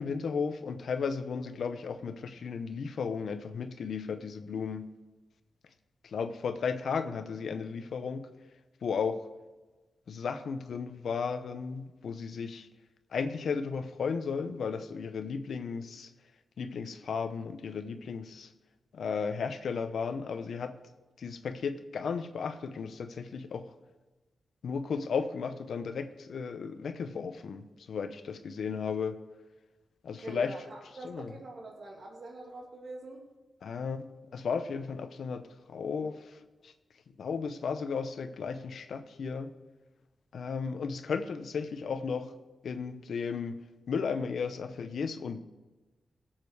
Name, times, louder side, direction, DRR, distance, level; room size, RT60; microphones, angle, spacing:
voice 1, 0.0-4.9 6.0-8.3 8.8-9.3 10.1-12.7 13.1-16.1 16.6-18.5 18.9-20.7 21.2-23.6 24.6-29.2 30.0-30.5 31.0-31.3 33.6-34.0 34.3-35.4 35.7-36.4 36.6-36.7 37.2-39.5 40.3-42.3 42.6-43.6 43.9-45.4, left 5 dB, 80° left, 10 dB, 0.8 m, -34 dB
voice 2, 30.2-33.2, right 2 dB, 60° right, 1 dB, 2.7 m, -44 dB
17.0 x 7.5 x 4.8 m, 1.2 s
cardioid pair, 55°, 0 cm